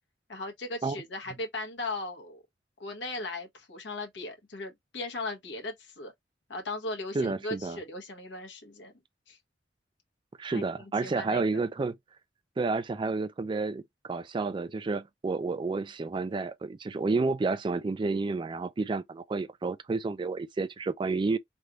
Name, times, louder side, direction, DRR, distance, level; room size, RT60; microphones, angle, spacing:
voice 1, 0.3-2.4 2.8-6.1 6.5-8.9 9.3-9.4 10.5-10.6 11.0-11.4, left 2 dB, 90° left, 1.2 m, -37 dB
voice 2, 7.1-7.8 10.4-12.0 12.6-21.4, right 3 dB, 25° right, 0.3 m, -30 dB
3.3 x 2.3 x 2.9 m
head